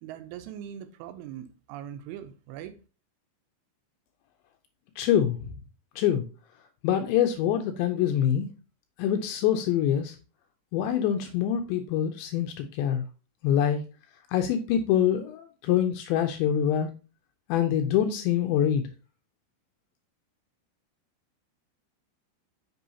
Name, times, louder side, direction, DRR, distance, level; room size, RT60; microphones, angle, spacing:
voice 1, 0.0-2.8, right 10 dB, 85° right, 3.1 m, -41 dB
voice 2, 5.0-5.4 6.0-6.3 6.8-8.5 9.0-10.2 10.7-13.0 13.4-13.8 14.3-16.9 17.5-18.9, left 10 dB, 85° left, 2.6 m, -25 dB
8.3 x 6.2 x 2.8 m
omnidirectional pair, 5.7 m